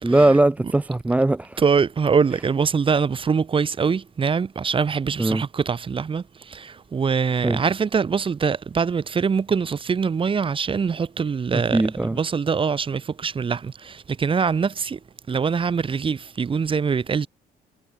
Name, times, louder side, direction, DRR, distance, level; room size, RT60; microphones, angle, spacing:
voice 1, 0.0-1.6 5.2-5.4 7.4-7.6 11.5-12.2, right 2 dB, 10° right, 0.4 m, -20 dB
voice 2, 1.6-11.8 12.1-15.0 15.3-17.3, right 6 dB, 30° right, 2.2 m, -23 dB
cardioid pair, 110°, 17 cm